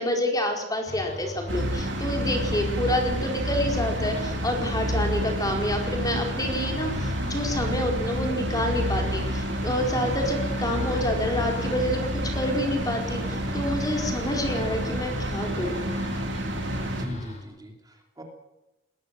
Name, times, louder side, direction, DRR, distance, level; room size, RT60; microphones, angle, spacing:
voice 1, 0.0-15.8, left 1 dB, 20° left, 2 dB, 4.6 m, -28 dB
sound 1, 0.9-17.4, left 2 dB, 35° left, 6.2 m, -38 dB
sound 2, 1.5-17.1, right 1 dB, 65° right, 4.0 m, -29 dB
voice 2, 16.8-18.2, equal, 20° right, 2 dB, 3.1 m, -42 dB
20.5 x 20.5 x 7.7 m, 0.93 s
head